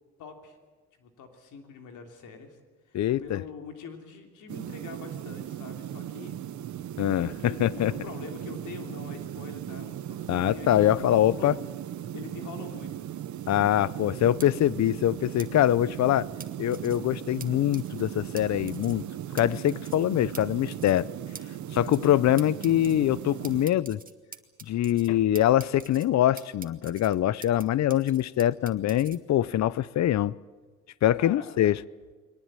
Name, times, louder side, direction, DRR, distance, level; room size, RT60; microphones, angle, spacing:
voice 1, 0.2-0.6 1.0-2.6 2.8-6.3 7.1-11.5 12.1-13.0 31.1-31.6, left 5 dB, 85° left, 3.3 m, -44 dB
voice 2, 2.9-3.4 7.0-7.9 10.3-11.5 13.5-16.3 16.6-19.0 19.3-21.1 21.7-24.0 24.7-30.3 31.0-31.8, left 12 dB, 65° left, 0.7 m, -24 dB
sound 1, 4.5-23.7, right 11 dB, 70° right, 1.2 m, -38 dB
sound 2, 14.4-14.5 15.4-15.5 16.4-17.0 17.4-17.5 17.7-18.0 18.4-18.5 18.7-19.0 19.4-19.5 19.7-20.0 20.3-20.4 20.7-21.0 21.3-21.4 21.7-22.1 22.4-23.0 23.4-25.1 25.3-26.1 26.4-27.6 27.9-29.2, right 5 dB, 30° right, 1.7 m, -45 dB
22.5 x 19.0 x 9.0 m
cardioid pair, 90°, 30 cm